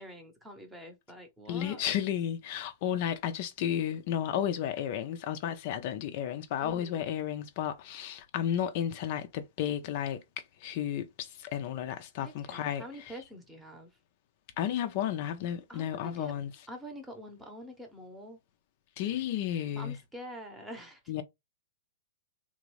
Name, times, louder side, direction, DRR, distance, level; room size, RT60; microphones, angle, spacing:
voice 1, 0.0-1.8 6.6-7.1 12.2-13.9 15.7-16.3 16.7-18.4 19.8-21.0, equal, 5° right, 0.8 m, -46 dB
voice 2, 1.5-10.2 10.6-13.2 14.6-16.5 19.0-20.0 21.1-21.2, left 10 dB, 40° left, 0.4 m, -33 dB
3.5 x 2.5 x 3.0 m
hypercardioid pair, 165°, 0 cm